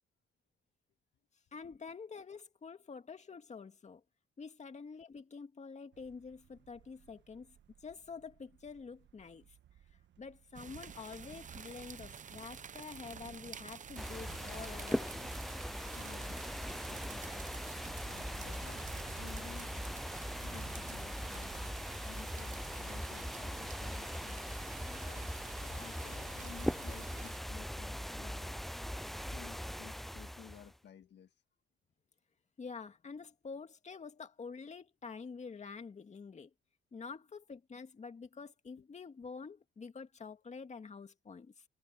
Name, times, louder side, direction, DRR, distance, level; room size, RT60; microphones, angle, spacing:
voice 1, 1.5-4.0 4.4-7.6 7.8-9.6 10.2-15.3 32.6-36.5 36.9-41.6, left 5 dB, 35° left, 2.3 m, -48 dB
sound 1, 5.9-11.0, right 10 dB, 65° right, 1.5 m, -66 dB
sound 2, 10.5-27.4, right 7 dB, 40° right, 0.8 m, -49 dB
sound 3, 14.0-30.8, equal, ahead, 0.4 m, -40 dB
voice 2, 15.8-19.8 20.4-21.6 22.0-24.4 24.9-28.7 29.3-31.4 38.8-38.9, left 8 dB, 60° left, 1.7 m, -55 dB
cardioid pair, 90°, 20 cm